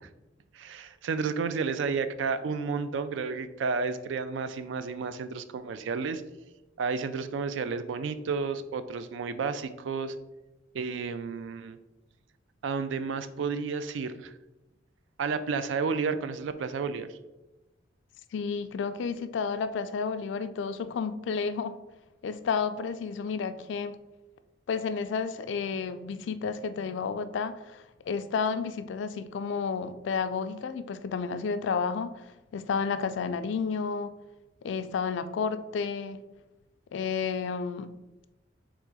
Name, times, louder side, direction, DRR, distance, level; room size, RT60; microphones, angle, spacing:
voice 1, 0.5-6.2 6.8-10.1 10.7-11.8 12.6-14.3 15.2-17.1, right 5 dB, 75° right, 12 dB, 0.3 m, -31 dB
voice 2, 18.3-21.8 22.2-24.0 24.7-32.2 32.5-34.1 34.6-36.2 36.9-37.9, left 5 dB, 70° left, 12 dB, 0.3 m, -31 dB
3.7 x 2.9 x 4.7 m, 1.0 s
head